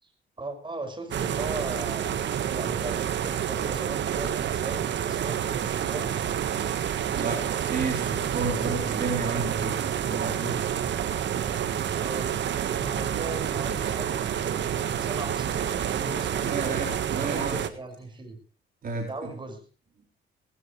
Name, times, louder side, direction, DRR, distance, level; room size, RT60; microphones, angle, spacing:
voice 1, 0.4-6.3 11.9-16.6 17.2-18.4 19.0-19.6, right 2 dB, 25° right, 6 dB, 6.0 m, -38 dB
sound 1, 1.1-17.7, right 9 dB, 65° right, 1.6 m, -28 dB
voice 2, 7.2-10.8 16.4-17.6 18.8-19.3, right 3 dB, 45° right, 2 dB, 3.9 m, -32 dB
19.0 x 16.0 x 3.3 m, 0.38 s
cardioid pair, 90°, 20 cm